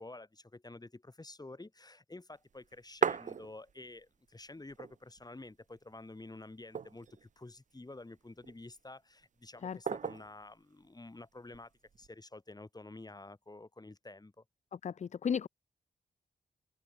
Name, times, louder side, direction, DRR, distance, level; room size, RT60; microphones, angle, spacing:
voice 1, 0.0-14.4, left 2 dB, 25° left, 4.7 m, -50 dB
sound 1, 2.5-4.0 4.4-4.5 4.6-5.5 5.9-6.0 6.5-7.3 8.0-8.7 9.9-10.4 11.5-12.1, right 7 dB, 55° right, 0.7 m, -36 dB
voice 2, 14.7-15.5, left 7 dB, 50° left, 0.6 m, -34 dB
supercardioid pair, 45°, 15 cm